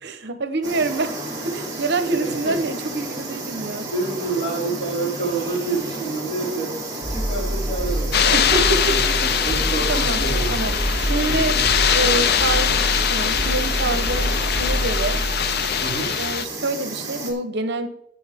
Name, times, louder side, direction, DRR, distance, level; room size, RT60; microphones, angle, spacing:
voice 1, 0.0-1.2 1.4-3.9 8.2-9.0 9.9-11.6 11.9-12.8 13.1-15.2 16.2-17.9, right 3 dB, 60° right, 9 dB, 0.9 m, -26 dB
sound 1, 0.6-17.3, right 2 dB, 20° right, 2.9 m, -32 dB
voice 2, 2.1-2.5 3.5-6.7 7.1-8.6 8.9-10.6 11.2-11.8 15.8-16.1, right 3 dB, 35° left, -4 dB, 4.9 m, -28 dB
sound 2, 7.0-16.1, right 1 dB, 85° left, 4.7 m, -26 dB
sound 3, 8.1-16.5, left 8 dB, 55° left, 0.5 m, -22 dB
17.5 x 6.0 x 3.5 m, 0.72 s
head